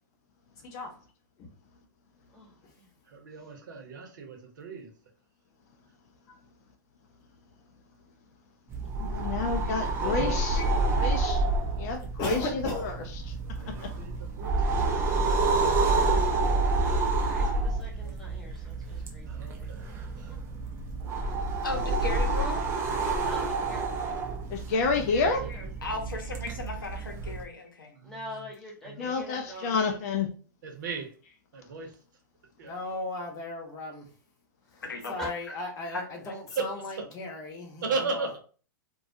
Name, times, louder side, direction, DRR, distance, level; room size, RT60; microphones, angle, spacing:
voice 1, 2.3-2.9 10.0-11.5 17.0-19.7 20.3-20.4 23.2-23.8 24.7-25.7 28.0-30.0 35.2-35.4, left 1 dB, 5° left, -3 dB, 0.9 m, -44 dB
voice 2, 3.1-4.9 13.6-14.8 18.0-18.1 19.3-19.9 20.2-20.3 25.0-25.5 25.8-25.9 27.9-28.2 28.8-29.1 30.6-31.1 31.5-31.9 32.6-32.7 36.6-36.7 37.0-37.1 37.8-38.4, right 4 dB, 65° right, 3 dB, 0.8 m, -36 dB
sound 1, 8.7-27.4, right 3 dB, 25° right, 0.5 m, -29 dB
voice 3, 9.0-10.6 11.0-11.4 11.8-12.9 13.6-13.9 24.5-25.6 29.0-30.3, left 4 dB, 50° left, 5 dB, 0.4 m, -29 dB
voice 4, 12.2-12.9 32.6-34.1 34.7-34.8 35.1-38.3, left 2 dB, 30° left, 1 dB, 0.8 m, -36 dB
voice 5, 21.6-22.7 25.8-27.9 34.8-35.2 35.9-36.3, left 2 dB, 85° left, 3 dB, 0.7 m, -36 dB
2.2 x 2.2 x 2.6 m, 0.39 s
hypercardioid pair, 110°, 11 cm